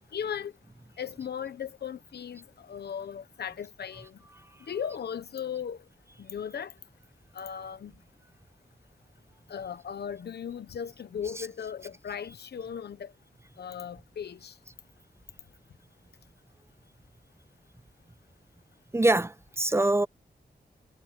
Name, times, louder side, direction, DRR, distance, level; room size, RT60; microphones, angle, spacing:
voice 1, 0.1-0.5 1.0-4.2 4.7-5.8 6.2-6.7 7.3-7.9 9.5-13.1 13.6-14.5, left 8 dB, 90° left, 1.2 m, -37 dB
voice 2, 18.9-20.1, right 2 dB, 15° right, 0.8 m, -24 dB
wide cardioid pair, 90°, 17 cm